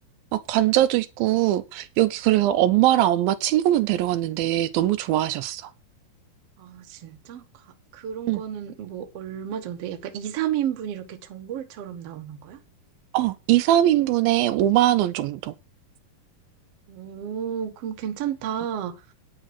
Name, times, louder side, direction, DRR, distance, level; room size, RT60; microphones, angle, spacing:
voice 1, 0.3-5.7 8.3-8.4 13.1-15.5, right 13 dB, 80° right, 2.4 m, -21 dB
voice 2, 6.6-12.6 16.9-19.0, right 9 dB, 60° right, 1.7 m, -32 dB
9.8 x 6.4 x 5.9 m
omnidirectional pair, 4.3 m